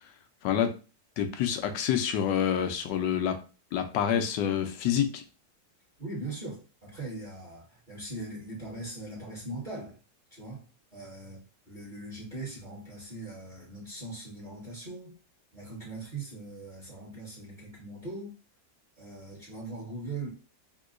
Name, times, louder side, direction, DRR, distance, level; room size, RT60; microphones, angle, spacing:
voice 1, 0.4-0.7 1.2-3.4 3.7-5.2, left 9 dB, 80° left, 7 dB, 1.2 m, -27 dB
voice 2, 6.0-10.0 10.3-15.1 15.5-18.3 18.9-20.3, right 2 dB, 30° right, -6 dB, 1.4 m, -40 dB
3.7 x 2.7 x 2.5 m, 0.33 s
omnidirectional pair, 1.9 m